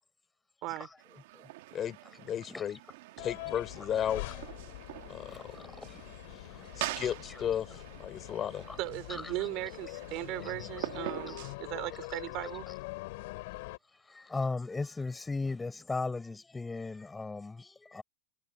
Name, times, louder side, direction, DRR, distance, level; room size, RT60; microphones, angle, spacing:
sound 1, 1.0-11.6, right 18 dB, 70° right, 1.6 m, -45 dB
voice 1, 1.7-2.8 3.2-4.2 5.1-5.5 6.8-7.7 8.0-8.7, left 9 dB, 30° left, 4.4 m, -34 dB
sound 2, 3.2-13.8, left 22 dB, 65° left, 3.1 m, -44 dB
voice 2, 5.3-6.0 6.5-6.7 8.7-8.8 9.1-9.3 10.6-10.9 11.3-11.5 14.1-18.0, left 3 dB, 10° left, 4.6 m, -37 dB
voice 3, 8.8-12.7, right 19 dB, 45° right, 2.9 m, -37 dB
supercardioid pair, 145°, 0 cm